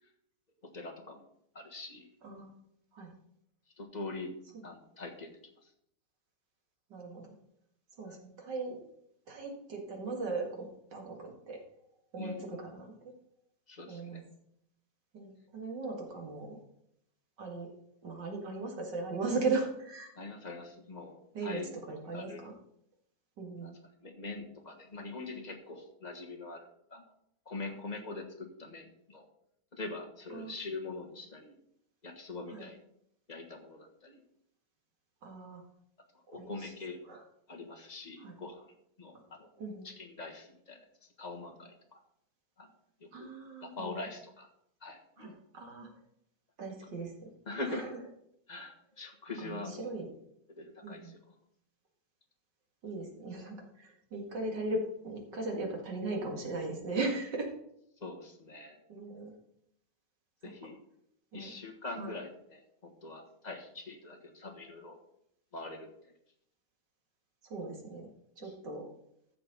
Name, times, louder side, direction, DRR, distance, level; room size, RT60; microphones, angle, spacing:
voice 1, 0.7-1.2 1.5-2.1 3.8-4.3 4.6-5.3 12.2-12.4 13.7-14.2 20.2-21.2 21.4-22.5 23.6-23.7 24.0-27.0 27.4-29.2 29.7-31.5 32.0-32.8 33.3-34.2 36.3-37.2 37.5-38.7 39.0-39.5 39.8-40.9 41.2-42.0 42.6-42.7 43.0-43.3 43.6-44.5 44.8-45.3 47.4-47.8 48.5-49.9 50.5-51.2 58.0-58.8 60.4-60.8 61.3-65.0 65.5-65.9 68.4-68.5, left 3 dB, 25° left, 2 dB, 1.4 m, -43 dB
voice 2, 6.9-7.3 8.0-8.8 9.3-11.6 12.1-13.1 13.9-14.2 15.1-16.6 17.4-17.7 18.0-20.1 21.3-22.5 23.4-23.7 30.3-30.5 32.5-32.7 35.2-35.6 36.3-36.7 37.1-37.2 38.2-38.3 39.6-39.9 43.1-44.1 45.2-45.9 46.6-47.3 47.6-47.9 49.4-50.1 50.8-51.1 52.8-57.5 58.9-59.4 61.3-61.5 62.0-62.1 67.4-68.1 68.4-68.9, right 3 dB, 65° right, 1 dB, 2.7 m, -38 dB
14.5 x 6.6 x 4.1 m, 0.74 s
omnidirectional pair, 2.0 m